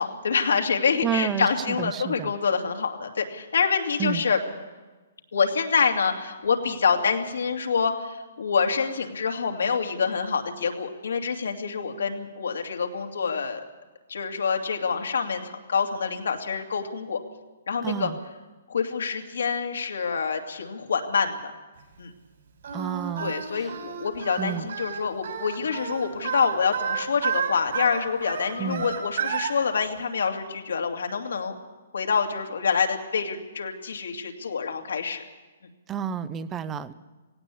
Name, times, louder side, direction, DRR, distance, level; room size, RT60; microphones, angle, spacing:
voice 1, 0.0-4.4 5.3-13.6 14.1-17.2 17.7-18.1 18.7-21.5 22.0-22.1 23.2-31.5 31.9-35.2, left 5 dB, 85° left, 3 dB, 2.6 m, -26 dB
voice 2, 1.0-2.3 4.0-4.2 17.8-18.2 22.7-23.7 24.4-24.7 28.6-28.9 35.9-36.9, right 8 dB, 15° right, 16 dB, 0.7 m, -30 dB
Singing, 22.6-29.5, right 7 dB, 65° right, 6.8 m, -31 dB
17.5 x 17.5 x 8.4 m, 1.2 s
hypercardioid pair, 160°, 0 cm